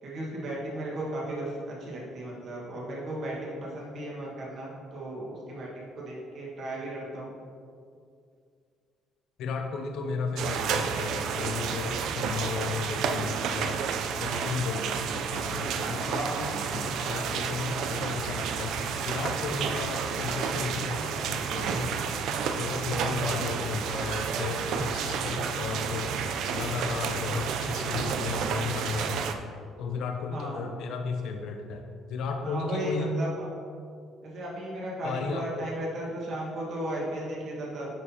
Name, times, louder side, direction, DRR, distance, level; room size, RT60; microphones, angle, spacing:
voice 1, 0.0-7.3 16.0-16.6 30.3-30.7 32.4-33.5 34.2-37.9, right 1 dB, 40° right, -4 dB, 1.4 m, -35 dB
voice 2, 9.4-13.9 14.2-16.2 16.7-18.8 19.0-21.9 22.6-26.1 26.5-29.3 29.8-31.8 32.1-33.2 35.0-35.8, left 5 dB, 60° left, 4 dB, 0.4 m, -34 dB
sound 1, 10.4-29.3, right 6 dB, 60° right, 0.4 m, -31 dB
9.4 x 4.2 x 2.8 m, 2.3 s
cardioid pair, 170°, 0 cm